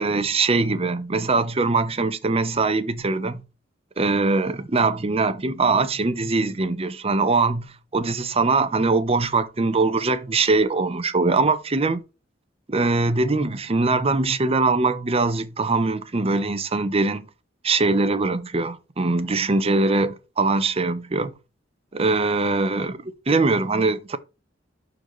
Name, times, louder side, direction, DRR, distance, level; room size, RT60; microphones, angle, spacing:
voice 1, 0.0-3.4 4.0-12.0 12.7-17.3 17.6-21.3 21.9-24.2, right 3 dB, 30° right, 0.7 m, -22 dB
11.5 x 4.0 x 3.1 m
head